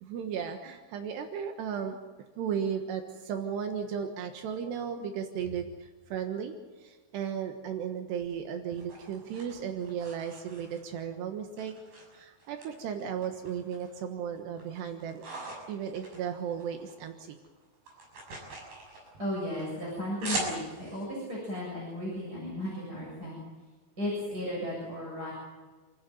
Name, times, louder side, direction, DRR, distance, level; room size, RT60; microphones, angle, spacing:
voice 1, 0.0-2.0 2.4-11.7 12.1-15.2 15.7-17.4, right 7 dB, 80° right, 5 dB, 3.6 m, -35 dB
sound 1, 8.2-11.1 11.6-12.7 13.0-14.0 14.4-17.0 17.2-21.0, right 2 dB, 60° right, 8.7 m, -41 dB
voice 2, 19.2-23.4 24.0-25.3, left 1 dB, 20° right, -4 dB, 8.0 m, -35 dB
28.5 x 15.5 x 9.3 m, 1.3 s
omnidirectional pair, 4.7 m